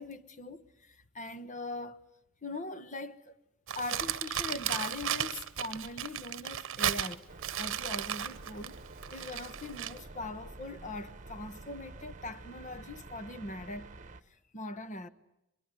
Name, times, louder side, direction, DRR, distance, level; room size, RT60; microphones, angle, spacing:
voice 1, 0.0-2.0 2.4-3.3 3.7-7.2 7.6-8.8 9.1-13.9 14.5-15.1, left 2 dB, 35° left, 1.3 m, -41 dB
Crumpling crinkling, 3.7-10.0, right 10 dB, 65° right, 1.0 m, -35 dB
sound 1, 7.3-14.2, right 3 dB, 35° right, 1.2 m, -49 dB
24.0 x 22.0 x 9.8 m
head